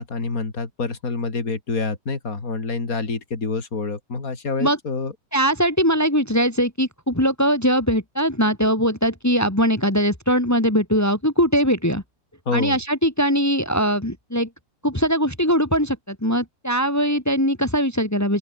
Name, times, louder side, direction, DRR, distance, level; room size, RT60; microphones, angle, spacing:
voice 1, 0.0-5.1 12.5-12.8, left 4 dB, 55° left, 3.6 m, -27 dB
voice 2, 5.3-12.0 12.5-14.5 14.8-18.4, equal, 10° left, 2.8 m, -21 dB
open air
omnidirectional pair, 1.8 m